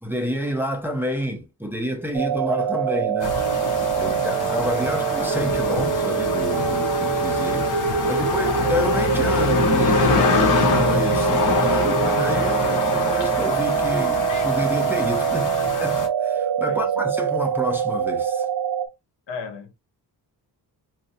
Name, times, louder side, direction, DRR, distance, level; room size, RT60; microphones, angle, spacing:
voice 1, 0.0-10.2 10.6-18.5, equal, 5° right, 0.6 m, -29 dB
sound 1, 2.1-18.9, right 7 dB, 70° right, 0.8 m, -24 dB
sound 2, 3.2-16.1, left 4 dB, 45° left, 0.9 m, -25 dB
voice 2, 4.0-4.4 16.7-17.1 19.3-19.8, left 5 dB, 80° left, 0.9 m, -37 dB
4.4 x 2.0 x 2.7 m
cardioid pair, 110°, 43 cm